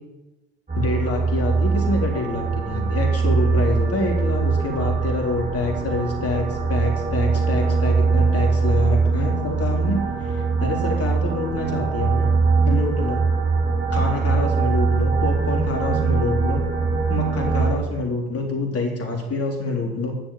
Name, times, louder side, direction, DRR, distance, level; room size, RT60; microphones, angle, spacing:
voice 1, 0.7-12.3 12.6-13.2 13.9-16.7 17.1-20.2, left 2 dB, 30° left, 1 dB, 3.9 m, -26 dB
sound 1, 0.7-17.7, right 4 dB, 20° right, 3.8 m, -22 dB
11.0 x 7.1 x 7.8 m, 1.0 s
hypercardioid pair, 75°, 44 cm